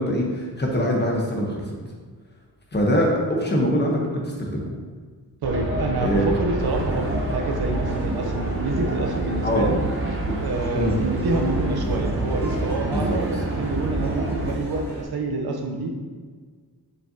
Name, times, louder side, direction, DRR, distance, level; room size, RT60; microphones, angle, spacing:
voice 1, 0.0-1.6 2.7-4.7 6.0-6.3 9.4-9.7 10.3-10.4 10.7-10.9 12.9-13.2, equal, 25° left, -1 dB, 1.0 m, -23 dB
sound 1, 5.4-14.5, right 2 dB, 30° right, 0.7 m, -27 dB
voice 2, 5.4-9.8 10.4-15.9, right 2 dB, 65° right, 3 dB, 0.8 m, -27 dB
sound 2, 6.6-15.0, right 2 dB, 5° left, 1.7 m, -39 dB
6.5 x 5.5 x 2.8 m, 1.5 s
wide cardioid pair, 155°, 40 cm